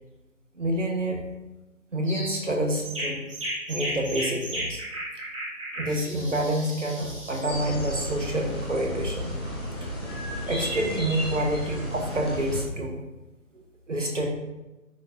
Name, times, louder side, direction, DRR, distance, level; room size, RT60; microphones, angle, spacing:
voice 1, 0.6-1.2 1.9-3.2 3.7-4.8 5.8-9.4 10.5-13.0 13.5-14.3, right 1 dB, 60° right, 2 dB, 1.5 m, -28 dB
sound 1, 2.0-2.4 2.8-7.5, equal, 20° right, 1.9 m, -34 dB
sound 2, 7.5-12.6, equal, 20° left, 1.1 m, -33 dB
10.5 x 3.9 x 2.8 m, 1.0 s
figure-of-eight pair, 155°, 42 cm